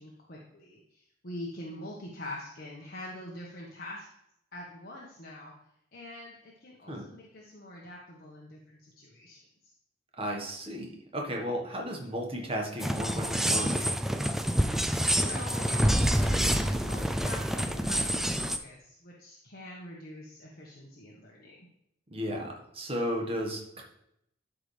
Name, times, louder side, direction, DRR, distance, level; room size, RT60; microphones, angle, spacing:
voice 1, 0.0-4.1 4.5-5.5 5.9-9.7 15.1-21.7, left 1 dB, 50° left, -3 dB, 1.3 m, -44 dB
voice 2, 10.2-10.9 11.1-13.8 22.1-23.8, equal, 30° right, 1 dB, 1.4 m, -34 dB
sound 1, 12.8-18.6, equal, ahead, 0.3 m, -27 dB
12.0 x 5.0 x 3.3 m, 0.78 s
head